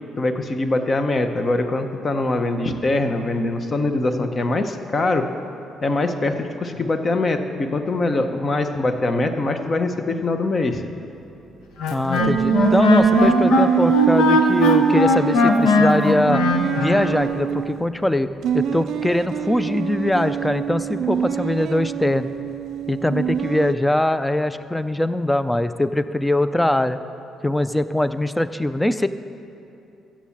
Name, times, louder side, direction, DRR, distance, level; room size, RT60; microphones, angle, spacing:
voice 1, 0.2-5.2 5.8-10.8, left 2 dB, 35° left, 7 dB, 1.0 m, -23 dB
Wind instrument woodwind instrument, 11.8-17.2, left 2 dB, 90° left, 1.0 m, -18 dB
voice 2, 11.9-16.4 16.8-22.3 22.9-27.0 27.4-29.1, left 1 dB, 10° left, 12 dB, 0.5 m, -22 dB
sound 1, 12.2-17.9 18.4-23.7, right 8 dB, 70° right, 0.4 m, -24 dB
14.0 x 7.5 x 7.2 m, 2.8 s
cardioid pair, 95°, 0 cm